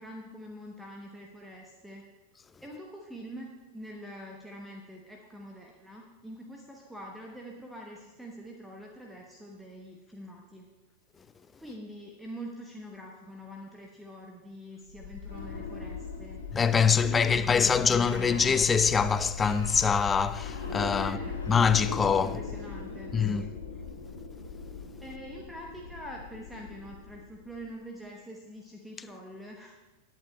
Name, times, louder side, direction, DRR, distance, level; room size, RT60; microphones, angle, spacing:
voice 1, 0.0-2.1 2.6-3.5 3.7-10.7 11.6-16.5 16.8-18.4 21.0-21.4 22.2-23.5 25.0-29.8, equal, 5° right, 1.0 m, -45 dB
sound 1, 14.9-27.7, left 5 dB, 70° left, 2.5 m, -38 dB
voice 2, 16.5-21.2 21.5-22.4 23.1-23.5, left 6 dB, 15° left, 0.4 m, -24 dB
19.5 x 8.2 x 2.3 m
figure-of-eight pair, 90°, 0 cm